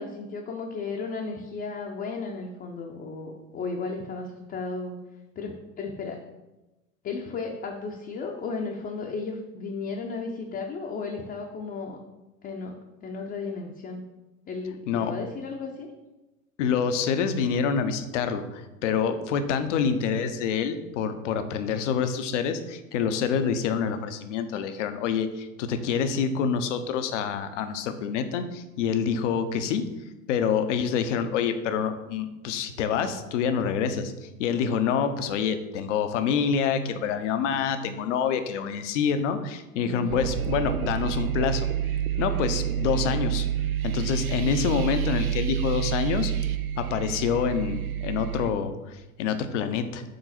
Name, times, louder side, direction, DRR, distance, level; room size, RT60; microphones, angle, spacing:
voice 1, 0.0-5.0 5.4-6.2 7.0-12.0 12.4-12.7 13.0-14.0 14.5-15.9 39.8-40.2, left 4 dB, 25° left, 0 dB, 0.7 m, -34 dB
voice 2, 16.6-29.8 30.3-41.7 42.2-43.5 43.8-46.3 46.8-50.0, left 7 dB, 60° left, 9 dB, 0.8 m, -27 dB
sound 1, 40.1-48.5, right 10 dB, 80° right, 0.6 m, -28 dB
6.5 x 3.9 x 4.3 m, 1.0 s
figure-of-eight pair, 85°, 42 cm